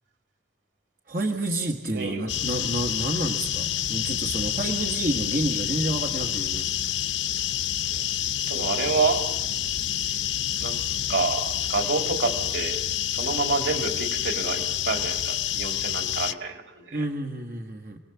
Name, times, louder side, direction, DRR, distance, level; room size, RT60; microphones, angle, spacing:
voice 1, 1.1-6.7 16.9-18.0, right 1 dB, 45° right, 3 dB, 1.8 m, -29 dB
voice 2, 1.9-2.3 8.5-9.2 10.6-10.8 11.1-12.8 13.1-17.0, right 4 dB, 85° right, 4 dB, 3.8 m, -28 dB
sound 1, 2.3-16.3, left 10 dB, 80° left, 0.9 m, -28 dB
30.0 x 19.5 x 7.2 m, 0.97 s
head